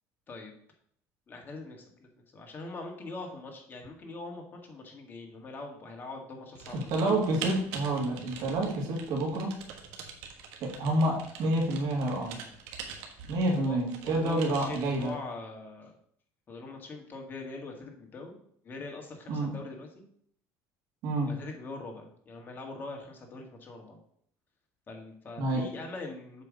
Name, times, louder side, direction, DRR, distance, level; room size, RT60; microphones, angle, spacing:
voice 1, 1.3-6.9 13.5-13.8 14.1-15.9 16.5-18.4 18.6-20.0 21.2-24.0 24.9-26.4, left 3 dB, 30° left, 2 dB, 1.9 m, -42 dB
Typing, 6.6-15.1, right 6 dB, 90° right, 1.3 m, -44 dB
voice 2, 6.7-9.6 10.6-12.4 13.3-15.1 19.3-19.5 21.0-21.3 25.4-25.7, right 1 dB, 65° right, 0 dB, 2.2 m, -28 dB
7.6 x 3.4 x 6.4 m, 0.65 s
cardioid pair, 120°, 7 cm